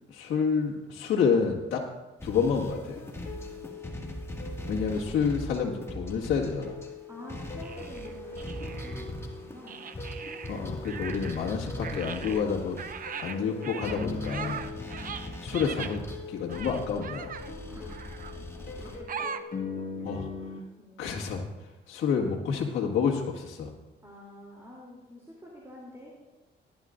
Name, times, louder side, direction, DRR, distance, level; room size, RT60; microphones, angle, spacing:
voice 1, 0.1-1.9 2.2-3.0 4.7-6.8 10.5-12.8 13.2-14.7 15.4-16.0 16.3-17.3 20.0-20.3 21.0-21.4 21.9-23.7, left 6 dB, 75° left, -4 dB, 1.9 m, -29 dB
sound 1, 2.2-6.9 7.3-19.0, equal, 15° left, 1.9 m, -41 dB
sound 2, 2.7-20.6, left 4 dB, 45° left, 1.7 m, -42 dB
voice 2, 3.3-3.7 7.1-9.9 17.7-19.3 20.8-21.4 24.0-26.1, left 1 dB, 15° right, -4 dB, 3.0 m, -49 dB
sound 3, 7.6-9.1 9.7-11.6 11.8-16.0 16.5-17.5 17.9-18.4 19.1-19.4, right 7 dB, 45° right, 0.7 m, -40 dB
19.0 x 11.5 x 2.5 m, 1.1 s
cardioid pair, 90°, 20 cm